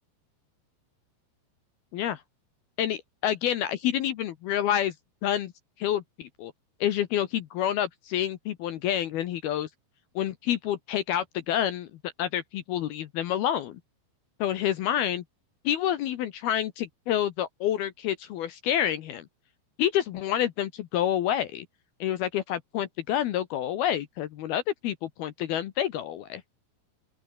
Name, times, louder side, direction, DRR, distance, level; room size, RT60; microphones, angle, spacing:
voice 1, 2.8-4.9 5.2-5.5 5.8-6.5 6.8-9.7 10.2-11.9 12.2-13.8 14.4-15.2 15.6-19.3 19.8-21.7 22.0-26.4, left 11 dB, 70° left, 2.5 m, -28 dB
open air
omnidirectional pair, 5.7 m